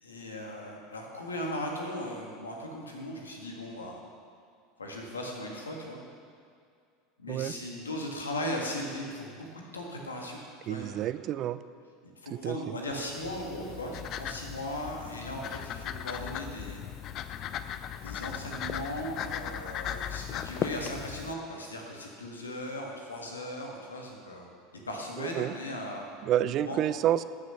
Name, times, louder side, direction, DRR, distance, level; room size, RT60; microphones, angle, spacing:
voice 1, 0.0-4.0 4.8-6.0 7.2-11.1 12.2-16.8 18.0-24.5 24.9-26.1 26.4-26.8, left 1 dB, 90° left, 0 dB, 1.8 m, -38 dB
voice 2, 10.7-11.6 12.3-12.8 25.2-25.5 26.2-27.2, right 12 dB, 45° right, 15 dB, 0.4 m, -29 dB
sound 1, 12.9-21.3, left 10 dB, 45° left, 0.5 m, -37 dB
13.5 x 6.8 x 5.8 m, 2.3 s
hypercardioid pair, 80°, 0 cm